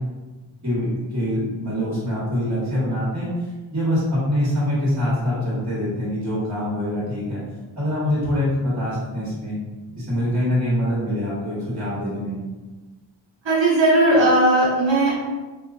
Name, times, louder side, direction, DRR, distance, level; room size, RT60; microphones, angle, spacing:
voice 1, 0.6-7.4 7.7-9.6 9.9-12.4, left 1 dB, 35° right, -8 dB, 1.2 m, -24 dB
voice 2, 13.4-15.2, right 1 dB, 65° right, -6 dB, 1.2 m, -17 dB
2.6 x 2.3 x 2.4 m, 1.2 s
cardioid pair, 40°, 48 cm